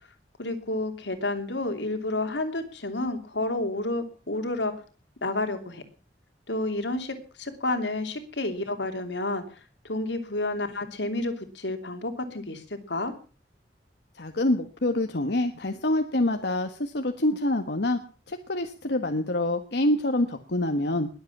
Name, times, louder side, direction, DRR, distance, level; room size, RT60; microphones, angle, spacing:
voice 1, 0.4-4.8 5.2-5.8 6.5-9.4 9.8-13.1, left 2 dB, 90° left, 6 dB, 2.9 m, -30 dB
voice 2, 14.2-18.0 18.3-21.1, left 1 dB, 70° left, 6 dB, 1.4 m, -26 dB
21.0 x 8.0 x 7.2 m, 0.38 s
head